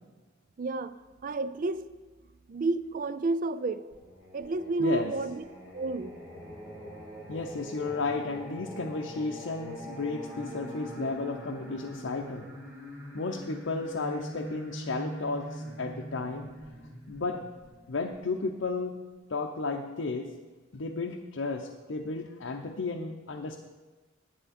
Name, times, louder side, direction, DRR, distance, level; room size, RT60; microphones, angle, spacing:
voice 1, 0.6-0.9 1.2-1.9 2.5-3.9 4.3-5.4 5.7-6.2, right 2 dB, 45° right, 14 dB, 0.4 m, -30 dB
Singing, 3.9-18.6, equal, 15° right, 2.1 m, -43 dB
voice 2, 4.8-5.1 7.3-12.5 13.1-16.5 17.1-17.4 17.9-19.0 19.3-20.3 20.7-23.6, left 3 dB, 80° left, 2 dB, 0.6 m, -33 dB
10.5 x 8.9 x 4.2 m, 1.3 s
head